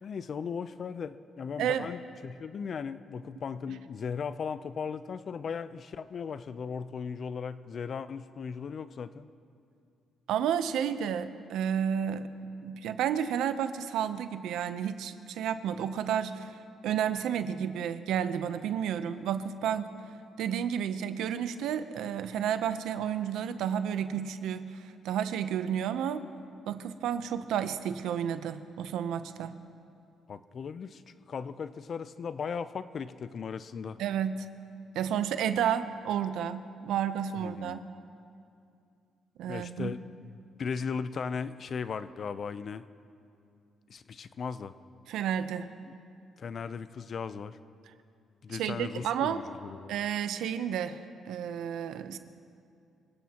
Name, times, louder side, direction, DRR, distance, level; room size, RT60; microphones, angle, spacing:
voice 1, 0.0-9.3 30.3-34.0 37.4-37.8 39.5-42.9 43.9-44.7 46.4-47.6 48.4-49.9, left 6 dB, 50° left, 13 dB, 0.6 m, -37 dB
voice 2, 1.6-1.9 10.3-12.3 12.6-16.6 16.8-19.9 20.4-26.2 26.7-29.5 34.0-34.5 34.9-37.8 39.4-39.9 45.1-45.7 48.5-49.4 49.9-51.0 51.3-52.2, right 9 dB, 85° right, 11 dB, 0.7 m, -31 dB
26.0 x 16.5 x 3.0 m, 2.5 s
cardioid pair, 90°, 0 cm